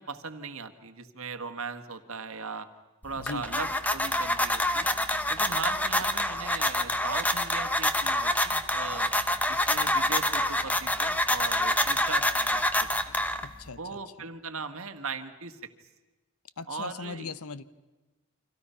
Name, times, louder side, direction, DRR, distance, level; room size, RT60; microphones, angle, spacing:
voice 1, 0.0-2.7 3.0-4.9 5.3-9.1 9.5-13.2 13.8-15.6 16.7-17.3, right 4 dB, 70° right, 8 dB, 1.6 m, -39 dB
sound 1, 3.0-13.7, left 1 dB, 5° left, 1.0 m, -27 dB
voice 2, 13.4-14.0 16.6-17.6, left 4 dB, 80° left, 15 dB, 0.9 m, -39 dB
30.0 x 25.5 x 5.7 m, 1.2 s
head